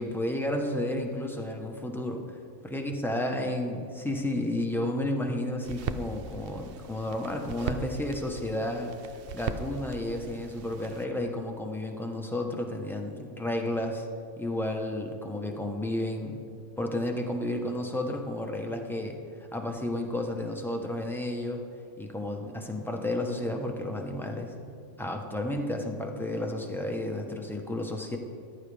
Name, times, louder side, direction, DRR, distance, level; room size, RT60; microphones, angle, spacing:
voice 1, 0.0-2.4 2.6-8.9 9.3-14.1 14.4-16.4 16.8-19.2 19.5-21.6 22.0-24.5 25.0-28.2, left 1 dB, ahead, 2 dB, 0.7 m, -32 dB
sound 1, 5.6-11.0, right 6 dB, 60° right, 0.6 m, -39 dB
14.5 x 11.0 x 3.4 m, 2.3 s
omnidirectional pair, 1.4 m